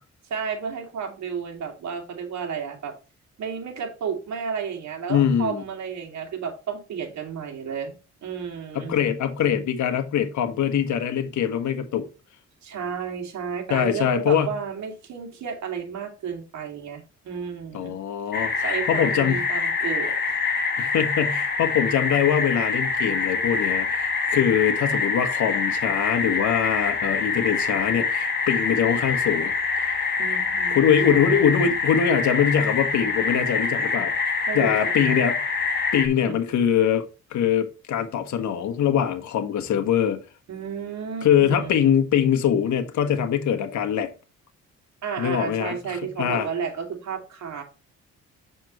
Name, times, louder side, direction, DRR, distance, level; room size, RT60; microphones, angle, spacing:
voice 1, 0.3-2.9 3.4-7.9 8.2-9.0 12.6-18.0 18.4-20.4 30.2-31.5 34.5-35.2 36.3-36.4 40.5-41.8 45.0-47.6, right 6 dB, 65° right, 2.3 m, -32 dB
voice 2, 5.1-5.6 8.7-12.1 13.7-14.5 17.7-19.4 20.8-29.5 29.8-30.0 30.7-34.1 34.5-35.4 35.9-37.0 37.3-40.2 41.2-44.1 45.2-46.5, left 8 dB, 70° left, 1.5 m, -23 dB
sound 1, 18.3-36.1, left 4 dB, 35° left, 1.7 m, -25 dB
7.2 x 6.8 x 3.1 m
cardioid pair, 90°, 30 cm